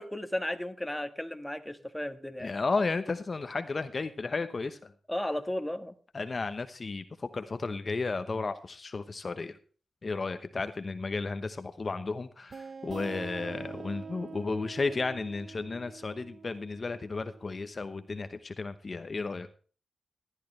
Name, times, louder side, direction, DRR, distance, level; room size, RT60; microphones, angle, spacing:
voice 1, 0.0-2.5 5.1-5.9, left 1 dB, 5° left, 8 dB, 1.5 m, -34 dB
voice 2, 2.4-4.8 6.1-9.6 10.0-19.5, left 3 dB, 45° left, 10 dB, 1.0 m, -33 dB
sound 1, 12.5-17.9, right 5 dB, 60° right, 0.7 m, -45 dB
15.0 x 11.0 x 3.2 m, 0.39 s
cardioid pair, 70°, 0 cm